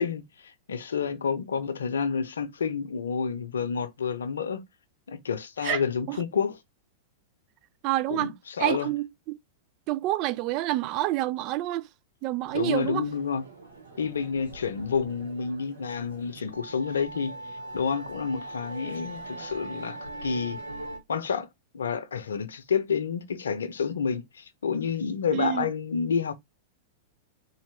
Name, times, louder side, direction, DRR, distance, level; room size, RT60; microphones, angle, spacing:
voice 1, 0.0-4.6 5.1-6.6 8.1-8.9 12.5-13.4 14.0-17.4 17.7-20.6 21.1-21.5 21.7-26.3, left 6 dB, 75° left, 0.6 m, -29 dB
voice 2, 7.8-8.3 8.6-9.4 9.9-11.9 12.2-13.1 25.3-25.7, right 16 dB, 45° right, 0.3 m, -28 dB
sound 1, 12.4-21.0, right 2 dB, 75° right, 1.4 m, -41 dB
4.0 x 2.5 x 3.3 m
figure-of-eight pair, 100°, 0 cm